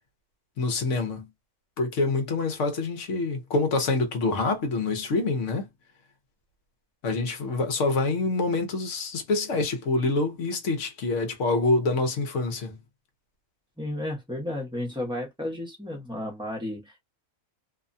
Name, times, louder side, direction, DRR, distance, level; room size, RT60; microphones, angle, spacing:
voice 1, 0.6-1.3 1.8-5.7 7.0-12.8, left 3 dB, 60° left, 1.0 m, -26 dB
voice 2, 13.8-17.0, left 1 dB, 5° right, 0.7 m, -33 dB
2.7 x 2.2 x 2.6 m
omnidirectional pair, 1.6 m